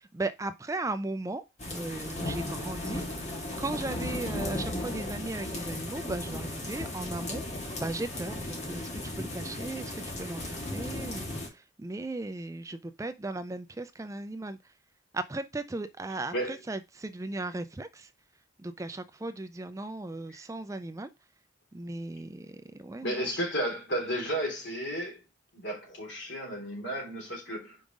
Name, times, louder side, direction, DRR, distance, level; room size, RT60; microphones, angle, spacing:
voice 1, 0.0-1.4 1.7-3.0 3.6-7.4 7.7-9.9 10.2-14.6 15.1-18.1 18.6-21.1 21.7-23.4, right 2 dB, 15° right, 0.3 m, -37 dB
sound 1, 1.6-11.5, left 1 dB, 35° left, 1.8 m, -36 dB
voice 2, 23.0-25.2 25.5-27.8, right 1 dB, 65° left, 3.5 m, -33 dB
5.4 x 4.8 x 5.1 m
head